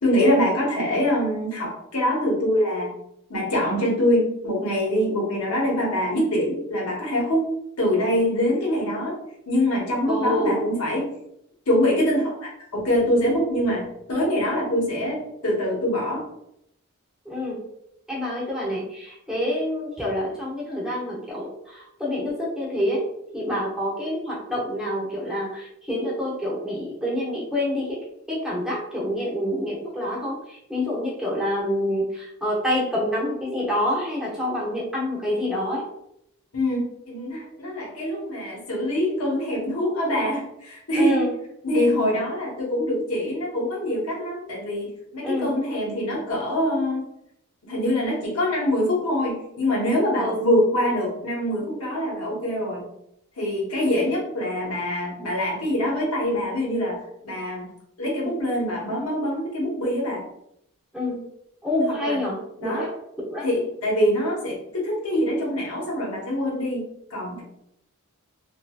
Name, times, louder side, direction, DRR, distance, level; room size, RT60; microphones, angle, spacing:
voice 1, 0.0-3.0 3.3-7.5 7.8-9.2 9.5-11.1 11.7-16.3 36.5-41.2 41.6-47.0 47.6-52.8 53.4-57.7 58.0-60.2 61.9-62.2 62.6-62.9 63.4-67.4, left 1 dB, 80° left, -4 dB, 1.1 m, -24 dB
voice 2, 10.1-10.5 17.3-17.6 18.1-23.0 23.3-28.0 28.3-35.8 40.9-41.3 45.2-45.5 50.2-50.4 60.9-61.2 61.6-62.9 63.3-63.5, left 1 dB, 5° right, -5 dB, 0.8 m, -27 dB
2.9 x 2.6 x 2.3 m, 0.77 s
head